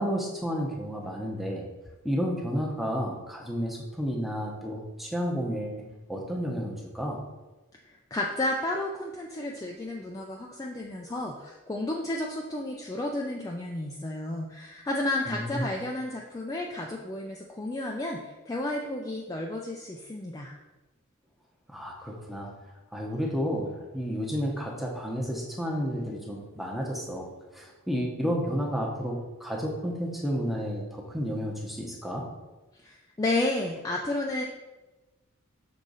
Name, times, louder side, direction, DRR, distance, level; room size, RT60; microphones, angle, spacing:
voice 1, 0.0-1.7 2.0-7.2 15.3-15.7 21.7-22.5 22.9-27.3 27.5-32.3, equal, ahead, -1 dB, 0.8 m, -31 dB
voice 2, 7.8-20.5 32.8-34.4, left 2 dB, 15° left, 0 dB, 0.4 m, -32 dB
6.5 x 3.7 x 4.0 m, 1.1 s
head